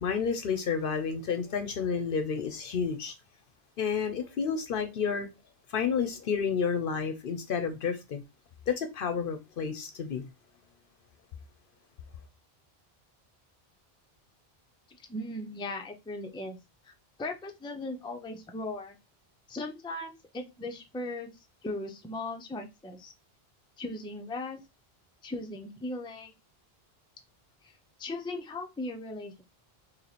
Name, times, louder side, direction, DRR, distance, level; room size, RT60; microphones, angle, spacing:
voice 1, 0.0-3.1 3.8-5.3 5.7-8.2 8.7-10.3, left 6 dB, 65° left, 0.7 m, -30 dB
voice 2, 15.1-16.6 16.8-16.9 17.2-19.0 19.5-21.3 21.6-23.1 23.8-24.6 25.2-26.3 27.6-27.7 28.0-29.4, left 2 dB, 5° left, 0.4 m, -38 dB
3.0 x 3.0 x 4.0 m
omnidirectional pair, 1.0 m